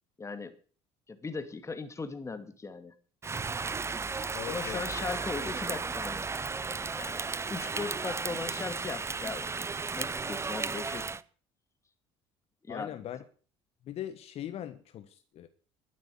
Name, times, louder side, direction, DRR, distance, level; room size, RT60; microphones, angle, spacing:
voice 1, 0.2-0.5 1.1-2.9 4.4-6.3 7.0-7.2 7.5-9.5 9.9-11.1 12.6-13.0, left 4 dB, 25° left, 2.4 m, -38 dB
Rain, 3.2-11.2, right 4 dB, 20° right, 0.8 m, -34 dB
voice 2, 4.3-4.8 12.7-13.2 13.8-15.5, left 11 dB, 55° left, 1.4 m, -40 dB
12.0 x 9.1 x 8.3 m
supercardioid pair, 80°, 12 cm